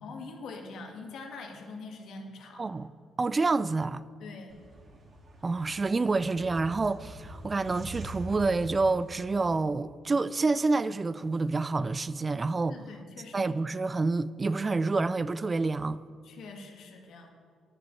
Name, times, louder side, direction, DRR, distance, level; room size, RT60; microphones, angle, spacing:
voice 1, 0.0-2.7 4.2-4.6 12.6-13.5 16.2-17.3, left 3 dB, 75° left, 1.6 m, -44 dB
voice 2, 2.6-2.9 3.2-4.0 5.4-12.8 13.3-16.0, right 3 dB, 30° right, 0.3 m, -28 dB
sound 1, 4.5-9.6, equal, 45° right, 1.9 m, -45 dB
10.5 x 6.1 x 7.6 m
cardioid pair, 90°, 0 cm